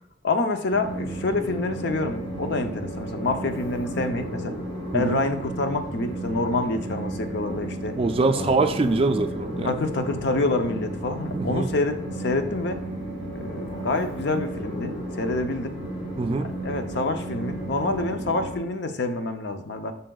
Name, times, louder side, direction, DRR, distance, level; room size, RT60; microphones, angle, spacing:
voice 1, 0.2-4.5 4.9-8.0 8.3-8.5 9.6-12.8 13.3-15.8 16.6-19.9, left 2 dB, 60° left, 7 dB, 0.6 m, -27 dB
Train, 0.7-18.6, right 1 dB, 30° left, 2.3 m, -33 dB
voice 2, 8.0-9.7 11.3-11.7 16.2-16.5, right 3 dB, 30° right, 8 dB, 0.3 m, -23 dB
7.5 x 5.5 x 2.3 m, 0.73 s
head